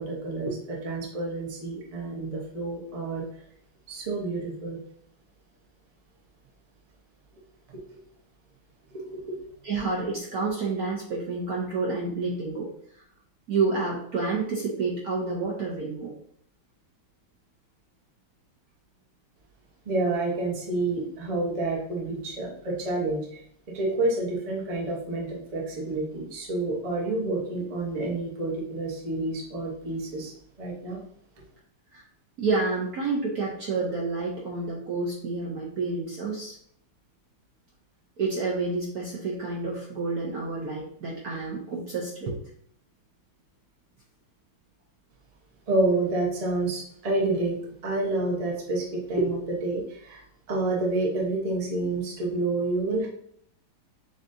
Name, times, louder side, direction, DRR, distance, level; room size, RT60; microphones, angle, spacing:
voice 1, 0.0-3.4 3.9-4.8 7.7-7.8 8.9-9.4 19.8-23.4 23.7-31.0 45.7-53.1, right 2 dB, 30° right, -3 dB, 0.6 m, -29 dB
voice 2, 9.6-13.0 13.5-16.1 31.9-32.0 32.4-36.6 38.2-42.4, right 3 dB, 60° right, -3 dB, 1.0 m, -29 dB
6.9 x 2.7 x 2.7 m, 0.65 s
omnidirectional pair, 2.3 m